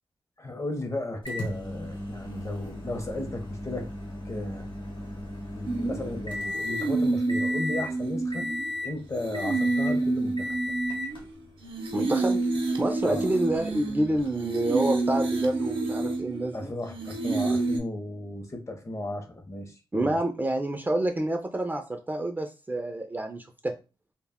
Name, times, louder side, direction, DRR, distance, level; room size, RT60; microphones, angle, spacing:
voice 1, 0.4-3.9 4.3-4.7 5.5-8.5 8.8-10.7 13.0-13.3 16.5-20.2, left 1 dB, 35° left, 6 dB, 0.6 m, -35 dB
Microwave oven, 1.3-6.9 7.3-7.9 8.3-8.9 9.3-10.0 10.4-11.2 12.2-12.3 14.3-14.4, left 1 dB, 60° left, 0.9 m, -35 dB
sound 1, 5.6-17.8, right 3 dB, 85° right, 0.5 m, -29 dB
voice 2, 11.9-12.4 12.8-16.7 19.9-23.8, right 1 dB, 20° right, 4 dB, 0.3 m, -28 dB
2.1 x 2.0 x 3.4 m, 0.31 s
wide cardioid pair, 85°, 9 cm